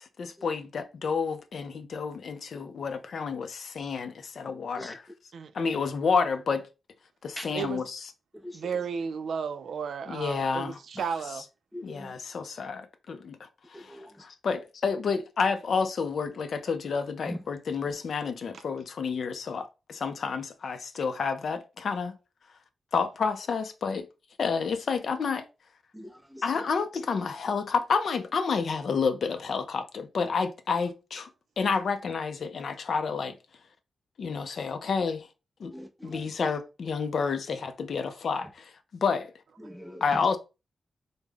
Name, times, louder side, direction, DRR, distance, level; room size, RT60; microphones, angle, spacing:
voice 1, 0.0-5.0 5.5-6.7 7.2-8.1 10.1-11.4 11.8-22.1 22.9-24.1 24.4-25.5 26.4-31.3 31.6-33.4 34.2-35.3 35.6-35.7 36.0-38.7 39.0-39.3 40.0-40.4, left 5 dB, 65° left, 0.4 m, -30 dB
voice 2, 8.5-10.7 11.0-11.4, right 6 dB, 80° right, 0.3 m, -33 dB
voice 3, 11.7-12.1 13.9-14.0 17.3-17.4 25.9-26.4 35.7-36.1 39.6-40.2, equal, ahead, 0.5 m, -40 dB
3.4 x 2.0 x 3.4 m
wide cardioid pair, 125°, 0 cm